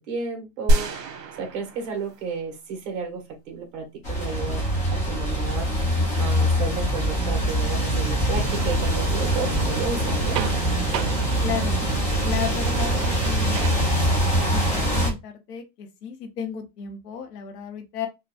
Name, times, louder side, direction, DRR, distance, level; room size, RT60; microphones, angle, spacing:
voice 1, 0.1-0.9 1.4-4.6 4.9-5.7 6.2-10.4, right 4 dB, 45° right, 2 dB, 1.2 m, -32 dB
sound 1, 0.7-2.6 2.9-3.0, right 1 dB, 65° right, 1.1 m, -25 dB
sound 2, 4.0-15.1, equal, 15° left, 0.5 m, -24 dB
sound 3, 8.4-13.9, right 9 dB, 85° right, 0.6 m, -31 dB
voice 2, 11.4-11.8 12.2-13.8 14.5-18.1, left 8 dB, 65° left, 6 dB, 0.9 m, -33 dB
3.7 x 2.3 x 2.4 m, 0.23 s
supercardioid pair, 165°, 50 cm